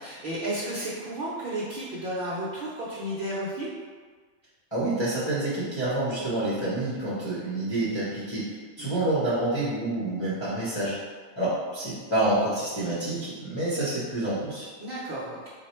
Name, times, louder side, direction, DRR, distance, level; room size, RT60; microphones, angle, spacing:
voice 1, 0.0-3.7 8.8-8.9 14.8-15.5, right 1 dB, 45° right, -8 dB, 0.9 m, -33 dB
voice 2, 4.7-11.0 11.4-14.7, right 2 dB, 20° left, -11 dB, 0.9 m, -28 dB
4.2 x 2.2 x 4.3 m, 1.5 s
omnidirectional pair, 1.5 m